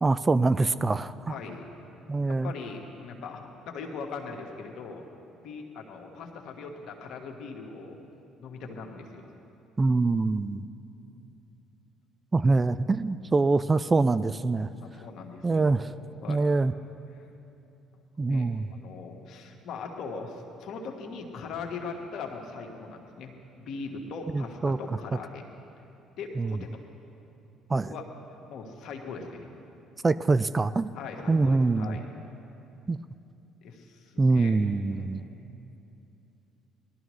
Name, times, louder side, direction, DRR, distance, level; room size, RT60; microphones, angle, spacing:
voice 1, 0.0-1.4 2.1-2.5 9.8-10.6 12.3-14.7 15.4-15.9 16.3-16.7 18.2-18.7 24.3-24.8 26.4-26.6 27.7-27.9 30.0-30.9 31.3-32.0 32.9-33.0 34.2-35.2, right 3 dB, 25° right, 15 dB, 0.3 m, -24 dB
voice 2, 1.3-1.7 2.2-5.1 5.4-8.0 8.4-9.3 11.0-11.2 14.8-15.9 16.2-16.4 17.1-17.2 18.2-25.4 26.2-26.7 27.9-28.1 28.5-29.5 30.9-32.1 33.6-34.6 34.8-35.3, left 4 dB, 65° left, 2 dB, 1.4 m, -40 dB
19.0 x 12.5 x 3.1 m, 2.8 s
hypercardioid pair, 60°, 0 cm